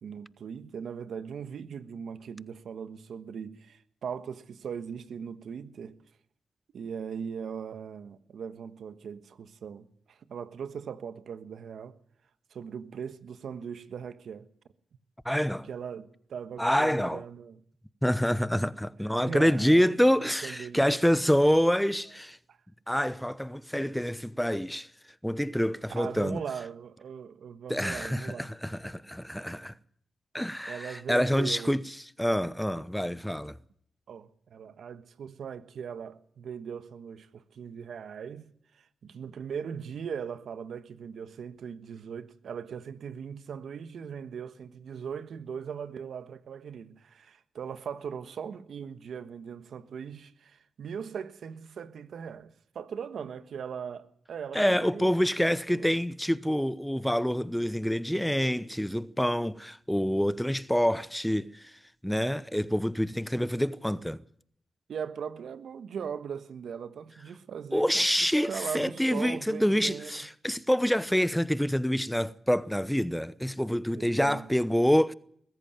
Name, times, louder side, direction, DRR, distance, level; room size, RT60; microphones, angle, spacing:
voice 1, 0.0-6.0 6.7-12.0 12.5-14.5 15.7-17.6 19.2-21.0 22.5-22.6 25.9-28.5 30.7-31.8 34.1-55.1 55.4-56.0 64.9-70.2 73.9-74.5, right 7 dB, 75° right, 1.3 m, -39 dB
voice 2, 15.2-15.7 16.6-17.2 18.0-22.4 22.9-24.9 25.2-26.4 27.7-29.7 30.3-31.8 32.2-33.5 54.5-61.7 62.0-64.2 67.7-75.1, equal, 5° left, 0.9 m, -27 dB
21.5 x 14.0 x 9.1 m
supercardioid pair, 40°, 0 cm